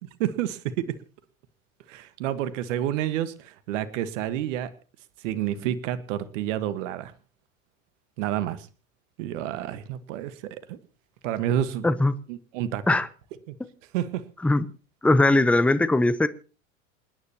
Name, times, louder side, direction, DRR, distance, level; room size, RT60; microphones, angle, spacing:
voice 1, 0.2-0.9 1.9-4.7 5.2-7.1 8.2-8.7 9.2-10.8 11.2-12.0 12.3-13.0 13.5-13.6 13.9-14.2, right 11 dB, 65° right, 14 dB, 1.5 m, -29 dB
voice 2, 11.8-12.1 12.9-13.1 14.4-14.6 15.0-16.3, left 2 dB, 5° left, 14 dB, 0.8 m, -20 dB
28.5 x 9.7 x 2.9 m, 0.35 s
hypercardioid pair, 95°, 40 cm